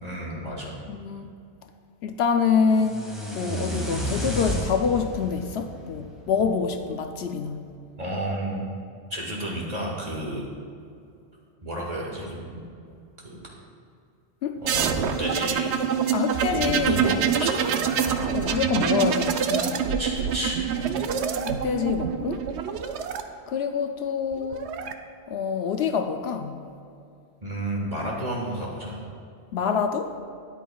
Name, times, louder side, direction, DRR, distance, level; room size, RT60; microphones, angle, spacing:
voice 1, 0.0-0.8 8.0-8.7 9.1-10.5 11.6-12.6 13.2-13.4 14.6-15.7 16.5-18.3 20.0-21.0 27.4-29.0, right 1 dB, 35° right, -3 dB, 1.9 m, -31 dB
voice 2, 0.9-1.3 2.0-3.1 3.3-7.7 14.4-14.6 16.1-17.0 18.3-20.0 21.5-22.4 23.5-24.7 25.3-26.6 29.5-30.1, left 6 dB, 70° left, 6 dB, 0.8 m, -26 dB
sound 1, 2.7-6.8, equal, ahead, 1.8 m, -32 dB
sound 2, 14.6-23.2 24.3-24.9, right 7 dB, 90° right, 0.9 m, -26 dB
13.0 x 10.0 x 2.3 m, 2.5 s
omnidirectional pair, 1.1 m